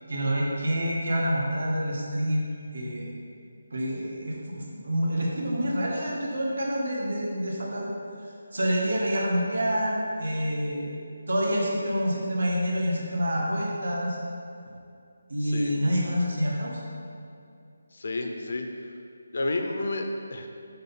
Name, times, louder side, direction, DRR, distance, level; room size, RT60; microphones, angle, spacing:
voice 1, 0.1-2.4 2.7-3.1 3.7-7.9 8.2-10.9 11.3-14.2 15.3-16.8, equal, 60° right, -3 dB, 1.6 m, -27 dB
voice 2, 15.4-15.7 17.9-18.6 19.3-20.5, left 2 dB, 45° left, 4 dB, 0.5 m, -30 dB
6.5 x 5.5 x 4.2 m, 2.5 s
hypercardioid pair, 180°, 0 cm